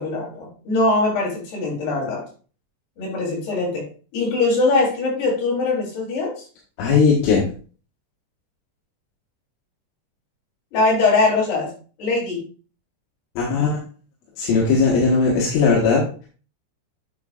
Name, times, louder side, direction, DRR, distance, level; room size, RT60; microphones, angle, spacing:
voice 1, 0.0-2.2 3.0-3.8 4.1-6.4 10.7-11.7 12.0-12.4, left 3 dB, 60° left, -4 dB, 5.0 m, -21 dB
voice 2, 6.8-7.5 13.4-13.8 14.4-16.0, left 4 dB, 80° left, -4 dB, 3.9 m, -18 dB
9.3 x 6.8 x 2.4 m, 0.38 s
omnidirectional pair, 5.5 m